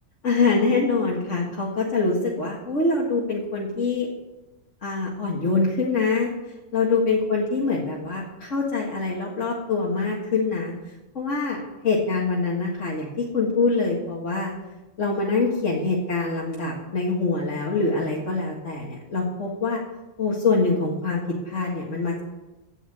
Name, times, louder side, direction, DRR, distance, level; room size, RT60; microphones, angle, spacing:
voice 1, 0.2-4.1 4.8-6.3 6.7-10.7 11.1-11.6 11.8-14.5 15.0-19.8 20.2-22.1, left 3 dB, 65° left, -4 dB, 2.2 m, -24 dB
16.5 x 5.5 x 8.7 m, 1.0 s
omnidirectional pair, 1.4 m